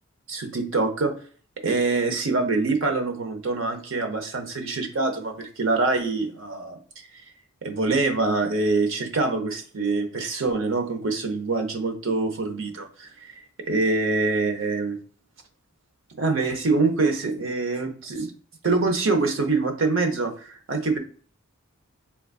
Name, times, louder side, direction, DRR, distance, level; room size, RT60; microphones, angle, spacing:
voice 1, 0.3-1.1 1.6-7.2 7.6-13.3 13.7-15.0 16.2-18.3 18.6-21.0, right 3 dB, 60° right, 5 dB, 0.8 m, -25 dB
3.9 x 3.5 x 2.3 m, 0.43 s
head